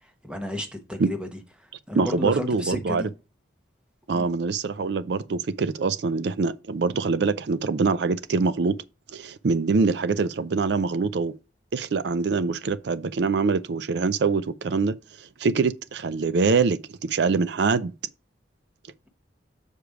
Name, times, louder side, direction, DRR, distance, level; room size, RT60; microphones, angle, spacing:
voice 1, 0.2-1.3 1.6-3.1 4.1-4.3, left 1 dB, 5° right, 1.0 m, -32 dB
voice 2, 1.9-3.0 4.1-8.8 9.1-11.3 11.7-17.9, right 4 dB, 65° right, 0.4 m, -24 dB
6.6 x 5.0 x 4.7 m
head